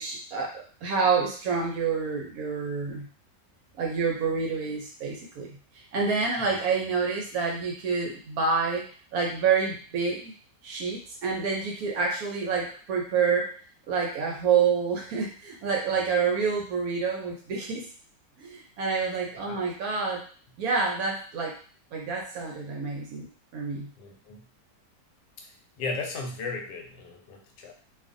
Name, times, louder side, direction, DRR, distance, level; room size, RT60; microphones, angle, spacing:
voice 1, 0.0-3.1 3.8-5.6 5.9-10.3 10.6-13.6 13.9-17.9 18.4-20.2 20.6-21.6 21.9-23.3 23.5-23.9, right 5 dB, 70° right, 0 dB, 0.9 m, -28 dB
voice 2, 24.0-24.4 25.4-25.5 25.8-27.7, left 3 dB, 85° left, 3 dB, 1.3 m, -36 dB
2.6 x 2.4 x 2.5 m, 0.41 s
omnidirectional pair, 1.8 m